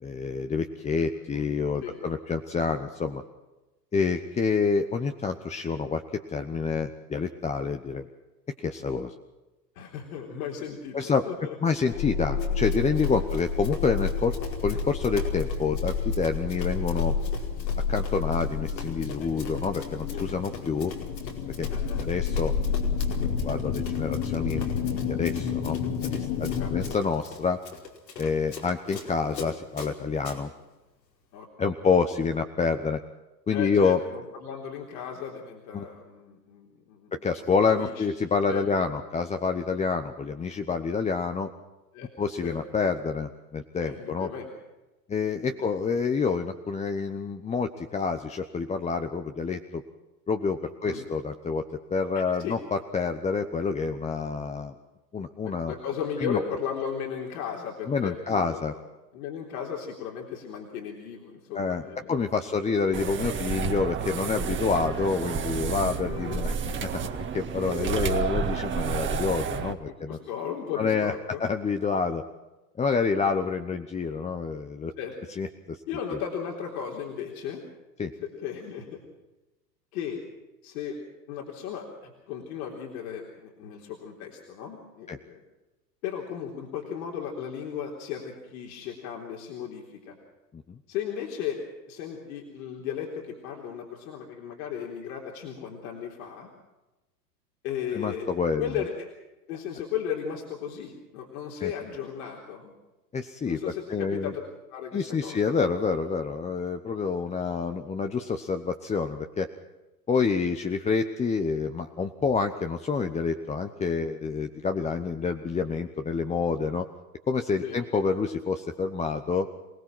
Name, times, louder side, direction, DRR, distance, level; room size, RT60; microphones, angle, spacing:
voice 1, 0.0-3.2 3.9-8.1 8.6-9.1 10.9-11.2 11.6-14.3 14.6-17.1 17.9-20.9 21.6-21.7 22.0-22.5 23.2-24.7 25.1-25.8 26.0-27.6 28.2-30.5 31.6-33.0 33.5-34.0 35.7-35.8 37.2-41.5 42.2-44.3 45.1-49.8 50.3-51.6 51.9-54.7 55.1-55.7 56.2-56.4 57.9-58.7 61.5-61.8 62.1-67.0 67.3-70.2 70.7-71.1 71.4-72.2 72.8-74.9 75.4-75.8 76.1-76.2 78.0-78.1 85.1-85.2 90.5-90.8 97.9-98.6 101.6-101.7 103.1-103.6 103.9-104.3 104.9-109.5 110.1-116.9 117.3-119.5, left 5 dB, 15° left, 7 dB, 0.9 m, -28 dB
voice 2, 1.0-1.4 1.8-2.0 9.8-11.5 13.1-13.3 19.2-19.5 20.1-20.2 21.7-22.1 26.6-26.7 31.3-31.5 33.5-37.2 37.6-38.1 38.5-38.6 41.9-42.1 42.4-42.6 43.8-44.5 45.4-45.8 50.8-51.0 52.1-52.6 55.4-58.8 59.1-62.2 66.0-66.4 69.9-71.5 73.2-73.3 75.0-75.1 75.9-77.6 78.2-79.0 79.9-80.2 80.6-81.0 81.3-85.4 86.0-90.1 90.9-91.6 91.9-96.5 97.6-98.3 98.6-99.1 99.5-102.7 103.4-104.4 104.7-105.4 117.6-117.8, left 8 dB, 60° left, 0 dB, 3.9 m, -36 dB
sound 1, 11.9-27.0, left 6 dB, 40° left, 2.6 m, -30 dB
Run, 12.4-30.4, left 5 dB, 80° left, 5.0 m, -43 dB
sound 2, 62.9-69.7, right 6 dB, 25° right, 1.8 m, -30 dB
27.5 x 18.0 x 6.2 m, 1.1 s
hypercardioid pair, 105°, 49 cm